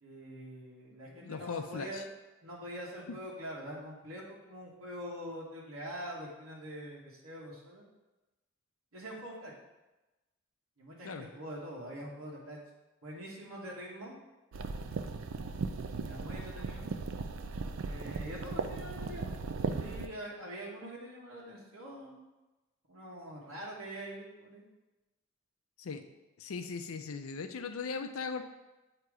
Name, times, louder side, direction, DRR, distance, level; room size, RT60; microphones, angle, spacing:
voice 1, 0.0-2.0 2.4-7.8 8.9-9.5 10.8-12.6 13.0-14.2 16.0-16.9 17.8-19.4 19.7-22.3 22.9-24.6, equal, 85° right, -5 dB, 1.3 m, -44 dB
voice 2, 1.1-2.0 3.1-3.2 11.0-11.3 25.8-26.0 26.4-28.4, left 5 dB, 80° left, 8 dB, 0.5 m, -39 dB
sound 1, 14.5-20.1, right 4 dB, 65° right, 0.4 m, -37 dB
7.9 x 2.9 x 4.8 m, 1.1 s
head